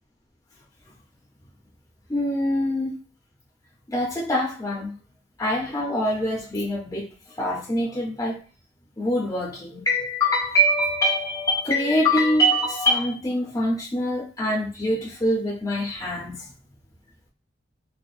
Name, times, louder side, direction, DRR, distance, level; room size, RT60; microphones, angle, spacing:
voice 1, 2.1-3.0 3.9-4.9 5.4-8.4 9.0-16.5, equal, 20° left, -4 dB, 0.8 m, -24 dB
4.4 x 2.6 x 2.5 m, 0.34 s
head